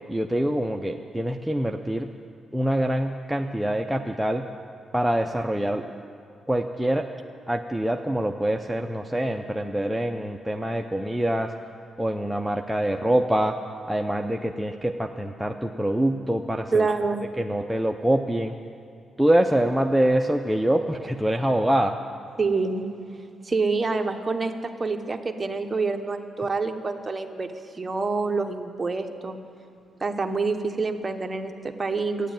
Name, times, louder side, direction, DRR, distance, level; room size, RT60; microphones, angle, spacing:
voice 1, 0.1-2.1 2.5-4.5 4.9-5.8 6.5-7.1 7.5-11.5 12.0-13.6 13.9-16.9 17.4-18.6 19.2-22.0, right 1 dB, 5° right, 2 dB, 0.5 m, -25 dB
voice 2, 16.7-17.3 22.4-22.9 23.4-27.5 27.7-29.4 30.0-32.3, right 4 dB, 25° right, 5 dB, 1.0 m, -27 dB
14.0 x 9.3 x 8.9 m, 2.4 s
cardioid pair, 110°, 0 cm